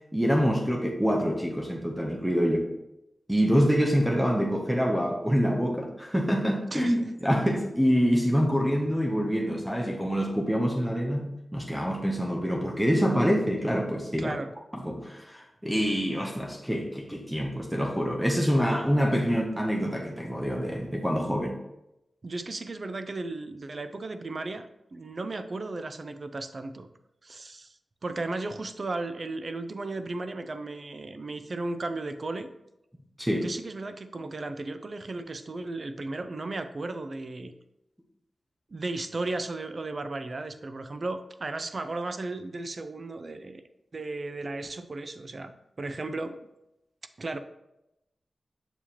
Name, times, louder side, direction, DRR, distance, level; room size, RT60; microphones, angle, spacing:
voice 1, 0.1-2.7 3.3-14.3 14.8-21.6 33.2-33.5, equal, 5° right, 0 dB, 0.8 m, -26 dB
voice 2, 6.7-7.1 14.2-14.5 22.2-26.9 27.2-32.5 33.3-37.5 38.7-43.6 43.9-45.5 45.8-46.5 47.2-47.4, right 2 dB, 45° right, 9 dB, 0.4 m, -35 dB
6.8 x 4.7 x 2.9 m, 0.88 s
wide cardioid pair, 110°, 0 cm